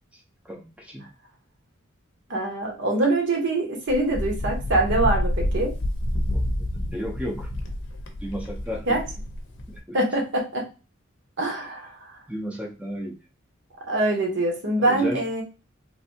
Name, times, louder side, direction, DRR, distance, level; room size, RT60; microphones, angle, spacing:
voice 1, 0.4-1.0 6.3-6.4 6.7-7.5 8.2-8.9 9.7-10.0 12.3-13.2 14.8-15.2, equal, 5° right, -1 dB, 0.6 m, -33 dB
voice 2, 2.3-5.7 8.9-9.0 9.9-10.7 11.4-12.1 13.9-15.4, right 2 dB, 65° right, 1 dB, 1.0 m, -24 dB
Wind, 3.9-9.8, left 1 dB, 65° left, 0.6 m, -28 dB
3.3 x 2.6 x 2.7 m, 0.32 s
head